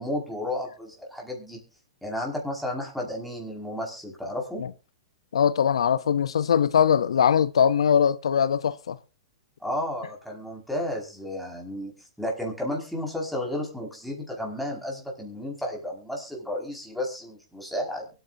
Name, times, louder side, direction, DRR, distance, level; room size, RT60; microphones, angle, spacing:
voice 1, 0.0-1.6 2.0-4.6 9.6-11.9 12.2-18.1, left 1 dB, ahead, 5.2 m, -32 dB
voice 2, 5.3-9.0, left 8 dB, 90° left, 0.6 m, -21 dB
23.0 x 9.4 x 2.7 m
hypercardioid pair, 140°, 3 cm